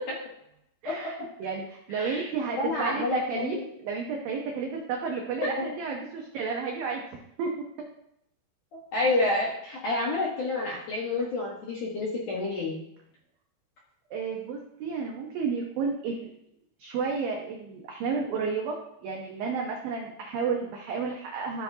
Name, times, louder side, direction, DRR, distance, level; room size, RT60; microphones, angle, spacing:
voice 1, 0.8-7.0 7.4-7.5 14.1-16.3 16.8-21.6, right 5 dB, 85° right, 1 dB, 2.0 m, -32 dB
voice 2, 1.9-2.3 2.6-3.6 5.6-5.7 8.7-12.8, left 2 dB, 70° left, -4 dB, 1.9 m, -29 dB
14.0 x 6.4 x 2.8 m, 0.76 s
omnidirectional pair, 5.6 m